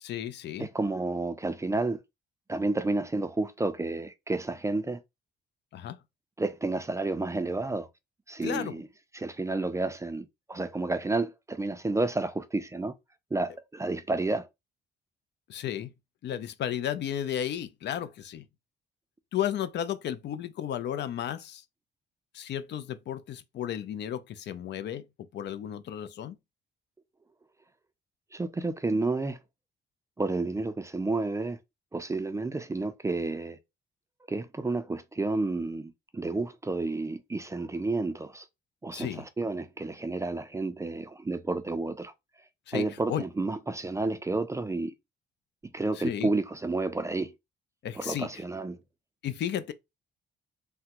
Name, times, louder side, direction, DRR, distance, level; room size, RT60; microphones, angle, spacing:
voice 1, 0.0-0.7 5.7-6.0 8.4-8.8 15.5-15.9 16.2-18.4 19.3-21.6 22.3-25.1 25.3-26.4 38.9-39.3 42.7-43.2 45.9-46.3 47.8-48.4 49.2-49.7, left 10 dB, 60° left, 0.4 m, -33 dB
voice 2, 0.6-2.0 2.5-5.0 6.4-7.9 8.3-8.9 9.1-12.9 13.3-14.5 28.3-29.4 30.2-31.6 31.9-33.6 34.3-38.5 38.8-42.1 42.7-44.9 45.7-47.3 48.0-48.8, right 3 dB, 15° right, 0.4 m, -30 dB
3.4 x 2.1 x 2.9 m
cardioid pair, 90°, 20 cm